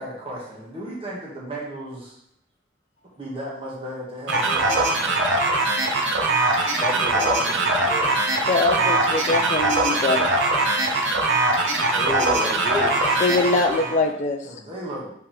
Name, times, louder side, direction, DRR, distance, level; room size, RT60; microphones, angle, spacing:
voice 1, 0.0-2.2 3.2-5.1 13.6-14.2 14.4-15.1, right 1 dB, 30° right, -5 dB, 1.2 m, -35 dB
sound 1, 4.3-14.0, right 2 dB, 85° right, 0.8 m, -22 dB
voice 2, 6.8-8.1 11.9-13.2, left 1 dB, 20° left, -3 dB, 0.9 m, -31 dB
voice 3, 8.5-10.3 13.2-14.4, left 3 dB, 40° left, 5 dB, 0.4 m, -22 dB
4.9 x 3.6 x 3.0 m, 0.72 s
head